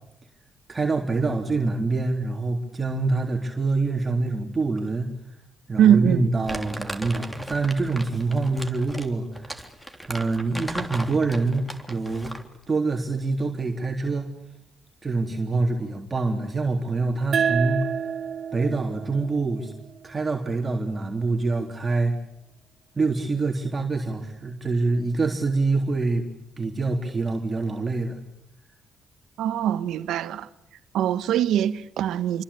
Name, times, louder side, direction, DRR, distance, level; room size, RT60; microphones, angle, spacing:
voice 1, 0.7-5.1 5.7-9.5 10.1-12.3 12.7-14.3 15.0-17.9 18.5-19.7 20.0-22.2 23.0-26.2 26.6-28.2, right 3 dB, 25° right, 3.5 m, -25 dB
voice 2, 5.8-6.3 29.4-30.5 30.9-32.4, right 10 dB, 80° right, 1.4 m, -22 dB
Crumpling crinkling, 6.5-12.5, equal, 5° left, 3.4 m, -37 dB
sound 1, 17.3-20.5, right 7 dB, 50° right, 1.7 m, -29 dB
28.0 x 24.5 x 8.7 m
cardioid pair, 115°, 0 cm